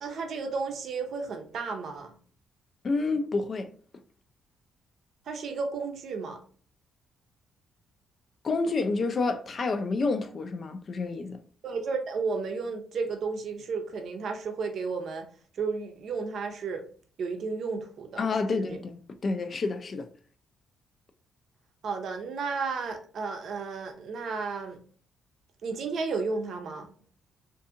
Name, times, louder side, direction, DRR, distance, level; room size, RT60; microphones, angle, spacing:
voice 1, 0.0-2.2 5.3-6.4 11.6-15.3 15.6-16.8 17.2-18.8 21.8-24.8 25.6-26.9, right 4 dB, 65° right, 0.5 m, -33 dB
voice 2, 2.8-3.7 8.4-11.4 18.2-20.1, left 3 dB, 45° left, 0.3 m, -29 dB
2.7 x 2.6 x 2.4 m
cardioid pair, 90°, 0 cm